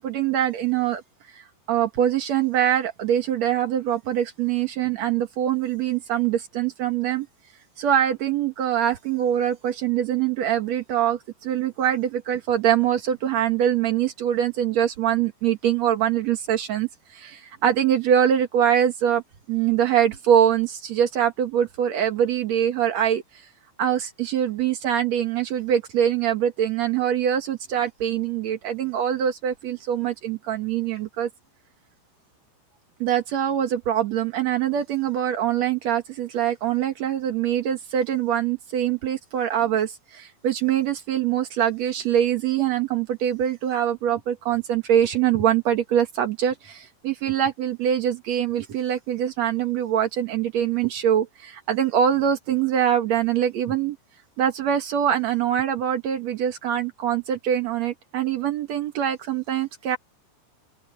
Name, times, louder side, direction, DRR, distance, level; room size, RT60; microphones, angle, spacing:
voice 1, 0.0-1.0 1.3-1.4 1.7-7.3 7.8-19.2 19.5-23.2 23.8-31.3 33.0-54.0 54.4-60.0, right 10 dB, 85° right, 1.5 m, -23 dB
open air
omnidirectional pair, 5.5 m